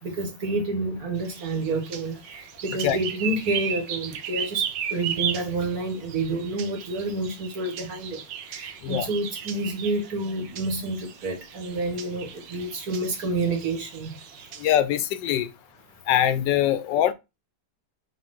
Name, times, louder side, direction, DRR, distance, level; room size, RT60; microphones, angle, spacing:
voice 1, 0.0-14.2, right 2 dB, 55° right, 2.1 m, -29 dB
sound 1, 1.1-14.7, right 8 dB, 90° right, 1.5 m, -36 dB
voice 2, 14.6-15.5 16.1-17.1, left 11 dB, 90° left, 1.4 m, -22 dB
5.0 x 3.7 x 5.4 m
omnidirectional pair, 1.9 m